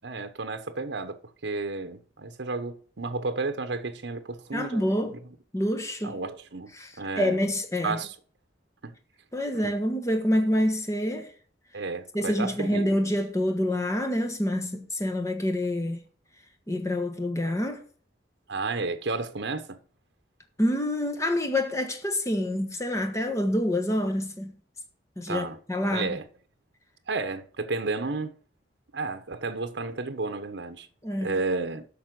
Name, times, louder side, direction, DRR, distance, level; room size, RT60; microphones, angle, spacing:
voice 1, 0.0-4.9 6.0-7.4 7.8-8.1 8.8-8.9 9.6-9.7 11.7-13.0 18.5-19.8 25.3-25.6 25.8-26.3 27.1-28.3 28.9-30.9 31.2-31.9, right 3 dB, 75° right, 0.9 m, -32 dB
voice 2, 4.5-5.2 5.5-6.2 6.8-8.0 9.3-11.3 12.1-16.0 16.7-17.8 20.6-24.5 25.2-26.1 31.0-31.4, left 1 dB, 15° left, 1.2 m, -27 dB
8.6 x 6.0 x 6.1 m
head